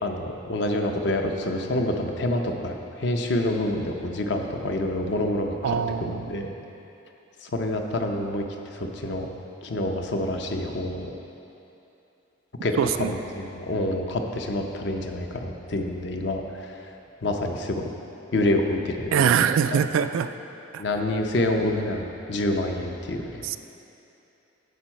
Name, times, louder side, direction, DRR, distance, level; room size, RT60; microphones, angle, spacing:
voice 1, 0.0-6.5 7.4-8.4 8.7-9.3 9.6-11.1 12.6-16.8 17.2-17.9 18.3-19.4 19.7-19.8 20.8-23.6, left 1 dB, 60° left, 3 dB, 0.6 m, -27 dB
voice 2, 5.6-6.3 12.8-13.1 19.1-20.3 20.7-20.8 23.4-23.6, right 7 dB, 80° right, 11 dB, 0.3 m, -23 dB
9.3 x 6.1 x 4.4 m, 2.9 s
head